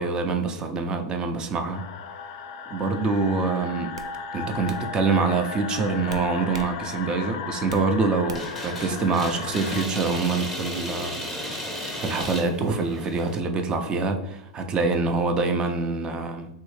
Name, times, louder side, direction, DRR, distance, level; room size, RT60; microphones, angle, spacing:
voice 1, 0.0-1.8 2.7-3.9 4.3-11.1 11.4-11.5 12.0-16.5, right 4 dB, 30° right, 6 dB, 0.5 m, -25 dB
sound 1, 1.7-9.9, left 5 dB, 60° left, 0.4 m, -36 dB
sound 2, 3.2-3.4 3.9-4.1 4.7-4.8 6.1-6.7 7.1-7.9 8.3-8.6, right 4 dB, 85° right, 0.3 m, -39 dB
sound 3, 8.3-13.4, equal, ahead, 0.9 m, -34 dB
3.3 x 2.6 x 3.1 m, 0.87 s
hypercardioid pair, 110°, 3 cm